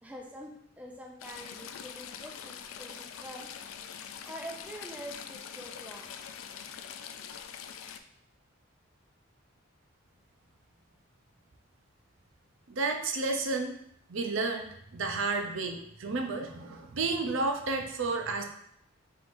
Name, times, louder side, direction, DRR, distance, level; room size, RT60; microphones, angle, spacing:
voice 1, 0.0-3.5 4.3-6.1, equal, 5° right, 0 dB, 0.4 m, -45 dB
Stream / Trickle dribble, 1.2-8.0, left 8 dB, 80° left, 0.3 m, -44 dB
voice 2, 12.7-13.7 14.1-18.4, right 3 dB, 70° right, 4 dB, 0.5 m, -31 dB
4.6 x 3.7 x 2.5 m, 0.73 s
head